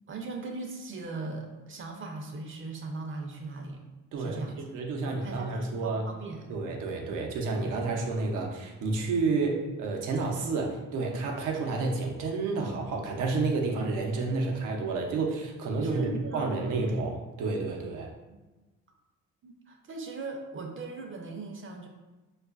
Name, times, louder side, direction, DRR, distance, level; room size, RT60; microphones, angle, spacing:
voice 1, 0.1-3.8 4.2-4.7 5.0-6.5 15.8-16.9 18.3-18.4 19.4-21.9, right 3 dB, 45° right, 2 dB, 0.6 m, -39 dB
voice 2, 4.1-6.0 6.5-18.1, right 3 dB, 85° right, 1 dB, 0.7 m, -30 dB
4.5 x 2.4 x 2.4 m, 1.1 s
cardioid pair, 90°, 30 cm